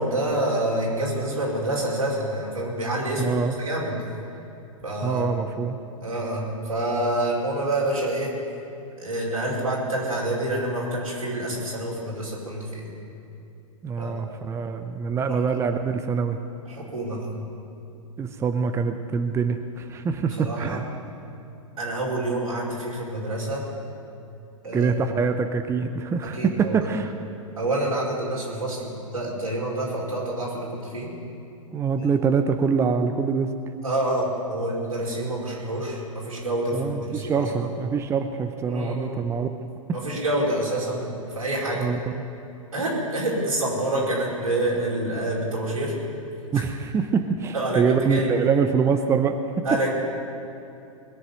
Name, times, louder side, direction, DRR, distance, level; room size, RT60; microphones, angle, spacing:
voice 1, 0.0-4.0 4.8-5.3 6.0-8.3 9.0-12.9 14.0-14.2 15.2-15.4 16.7-17.3 20.3-20.8 21.8-23.7 24.6-24.9 26.2-26.8 27.6-31.1 32.0-32.1 33.8-37.7 38.7-39.2 39.9-41.9 42.7-45.9 47.5-48.3 49.6-49.9, right 1 dB, 90° right, -4 dB, 4.9 m, -27 dB
voice 2, 3.2-3.6 5.0-5.8 13.8-16.4 18.2-20.8 24.7-27.1 31.7-33.5 36.7-39.5 41.8-42.2 46.5-49.6, right 5 dB, 15° right, 7 dB, 0.7 m, -24 dB
21.0 x 7.1 x 9.2 m, 2.7 s
hypercardioid pair, 110°, 18 cm